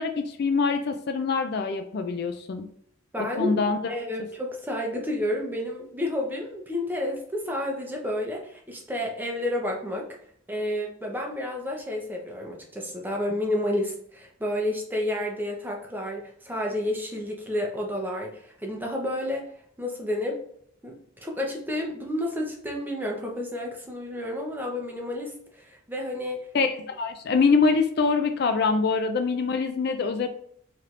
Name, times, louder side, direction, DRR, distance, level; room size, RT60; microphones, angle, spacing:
voice 1, 0.0-2.7 3.2-3.9 26.5-30.3, left 4 dB, 50° left, 7 dB, 0.4 m, -24 dB
voice 2, 3.1-3.6 3.9-10.1 10.5-19.5 19.8-20.4 20.8-21.0 21.2-26.5, left 1 dB, 10° right, 0 dB, 0.7 m, -30 dB
4.4 x 3.3 x 2.5 m, 0.67 s
head